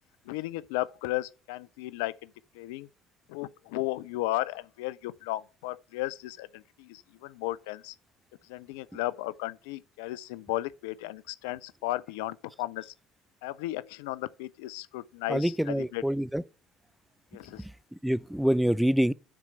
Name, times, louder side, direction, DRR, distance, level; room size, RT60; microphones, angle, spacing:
voice 1, 0.3-2.9 3.3-8.0 8.4-12.9 13.4-16.0 17.3-17.7, left 17 dB, 75° left, 0.4 m, -35 dB
voice 2, 15.3-16.4 17.6-17.7 18.0-19.1, equal, 5° right, 0.4 m, -26 dB
9.7 x 4.4 x 6.6 m
hypercardioid pair, 60°, 0 cm